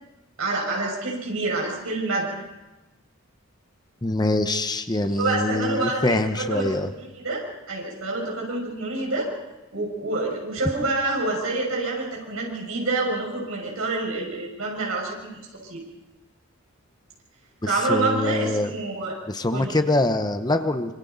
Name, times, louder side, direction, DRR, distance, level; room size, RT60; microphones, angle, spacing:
voice 1, 0.4-2.4 5.2-7.4 7.7-9.3 9.7-15.8 17.7-19.1 19.5-19.8, right 2 dB, 75° right, -2 dB, 6.4 m, -27 dB
voice 2, 4.0-6.9 17.6-18.7 19.3-20.9, left 2 dB, 20° left, 8 dB, 0.9 m, -24 dB
25.5 x 25.5 x 4.0 m, 1.1 s
head